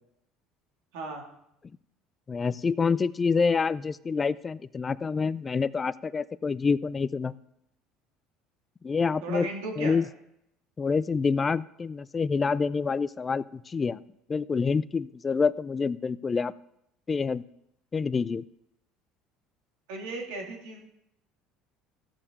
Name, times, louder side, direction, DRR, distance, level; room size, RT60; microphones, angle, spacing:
voice 1, 0.9-1.2 9.2-10.0 19.9-20.8, right 2 dB, 80° right, 1 dB, 2.3 m, -35 dB
voice 2, 2.3-7.3 8.8-9.5 9.8-10.1 10.8-14.0 14.3-16.5 17.1-17.4 17.9-18.4, left 5 dB, 25° left, 18 dB, 0.4 m, -27 dB
14.5 x 6.9 x 3.7 m, 0.79 s
supercardioid pair, 95°, 0 cm